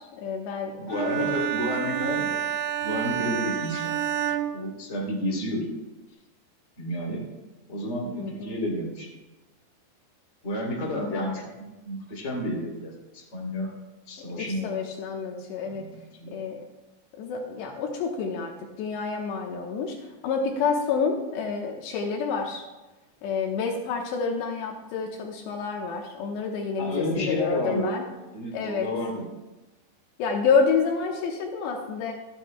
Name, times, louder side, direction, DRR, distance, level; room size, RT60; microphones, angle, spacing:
voice 1, 0.0-1.3 8.2-8.6 11.0-11.4 14.4-15.8 16.3-16.6 17.2-22.7 23.2-28.0 28.5-28.9 30.2-32.1, left 5 dB, 75° left, 1 dB, 3.1 m, -28 dB
voice 2, 0.8-2.4 2.8-4.2 4.5-5.7 6.8-7.2 7.7-9.1 10.4-13.7 14.1-14.7 15.6-16.3 26.8-27.9 28.3-29.2, equal, 20° left, -1 dB, 2.7 m, -31 dB
Bowed string instrument, 0.9-5.4, right 10 dB, 85° right, 3.1 m, -29 dB
25.0 x 9.8 x 2.2 m, 1.1 s
omnidirectional pair, 5.2 m